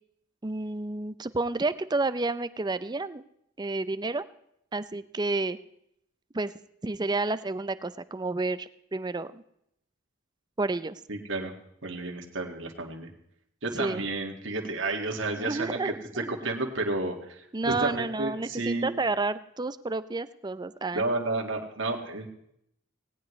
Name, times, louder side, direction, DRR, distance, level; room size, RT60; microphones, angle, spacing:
voice 1, 0.4-3.2 3.6-4.2 4.7-5.6 6.3-6.5 6.8-9.4 10.6-11.0 13.7-14.0 15.4-16.3 17.5-21.0, right 3 dB, 20° right, 14 dB, 0.5 m, -30 dB
voice 2, 11.1-11.5 11.8-13.1 13.6-18.9 20.9-22.3, right 2 dB, 70° right, 2 dB, 1.9 m, -31 dB
18.0 x 18.0 x 3.2 m, 0.75 s
head